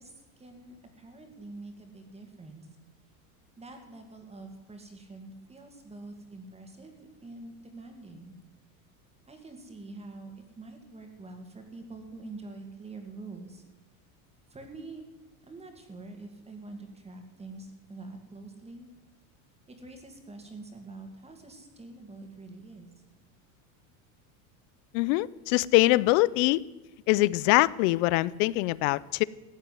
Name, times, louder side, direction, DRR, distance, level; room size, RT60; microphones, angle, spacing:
voice 1, 0.0-2.7 3.6-8.3 9.3-13.6 14.5-15.0 15.4-18.9 19.7-23.0, right 3 dB, 15° right, 5 dB, 2.3 m, -46 dB
voice 2, 24.9-26.6 27.1-29.2, left 20 dB, 60° left, 22 dB, 0.6 m, -23 dB
15.0 x 8.1 x 9.4 m, 1.1 s
supercardioid pair, 135°, 43 cm